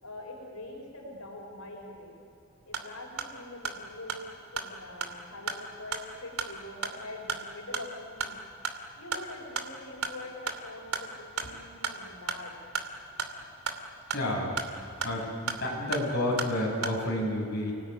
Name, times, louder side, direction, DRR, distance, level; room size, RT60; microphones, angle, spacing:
voice 1, 0.0-2.2 2.6-8.4 9.0-12.5, left 2 dB, 85° left, 0 dB, 5.6 m, -44 dB
sound 1, 2.5-17.0, right 4 dB, 85° right, 2.6 m, -37 dB
voice 2, 14.1-14.6 15.0-17.7, left 1 dB, 45° left, -3 dB, 7.4 m, -30 dB
29.5 x 19.5 x 9.6 m, 2.7 s
head